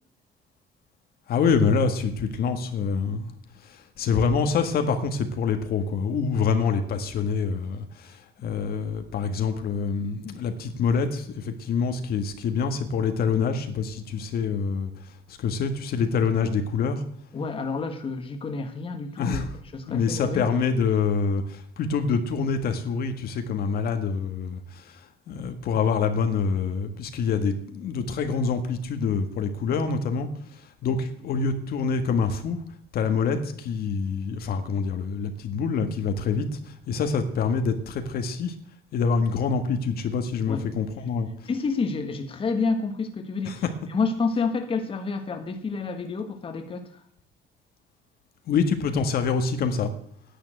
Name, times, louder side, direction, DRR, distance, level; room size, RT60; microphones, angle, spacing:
voice 1, 1.3-3.3 3.6-17.0 19.2-19.5 19.9-32.6 32.9-38.5 38.9-41.3 43.4-43.7 48.5-49.9, left 5 dB, 65° left, 7 dB, 1.7 m, -26 dB
voice 2, 17.3-19.4 19.7-20.4 40.5-40.6 41.4-43.6 43.9-47.0, left 4 dB, 30° left, 6 dB, 1.5 m, -29 dB
10.0 x 8.8 x 7.8 m, 0.65 s
cardioid pair, 110°, 17 cm